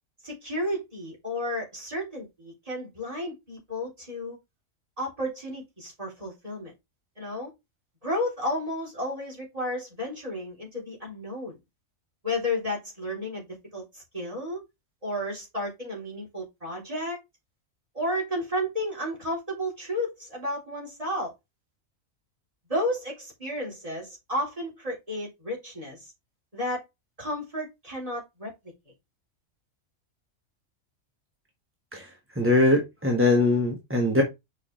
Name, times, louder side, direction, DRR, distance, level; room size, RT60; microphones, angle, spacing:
voice 1, 0.2-4.4 5.0-6.7 7.2-7.5 8.0-11.6 12.2-13.5 13.7-14.6 15.0-17.2 17.9-21.3 22.7-26.1 26.5-26.8 27.2-28.5, left 1 dB, 25° right, 3.6 m, -32 dB
voice 2, 32.4-34.2, left 2 dB, 10° right, 1.2 m, -22 dB
6.5 x 5.0 x 3.2 m
omnidirectional pair, 1.4 m